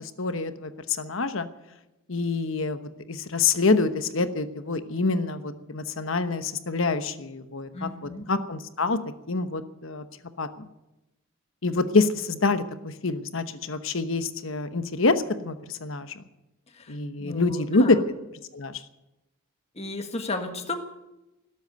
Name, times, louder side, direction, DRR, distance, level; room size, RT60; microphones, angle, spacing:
voice 1, 0.0-1.5 2.1-9.0 9.3-10.0 10.4-10.7 11.6-16.1 16.9-18.0 18.5-18.8, left 3 dB, 65° left, 10 dB, 1.1 m, -26 dB
voice 2, 7.7-8.3 16.7-18.0 19.7-20.7, left 2 dB, 30° left, 5 dB, 1.6 m, -34 dB
18.0 x 8.1 x 9.2 m, 0.96 s
head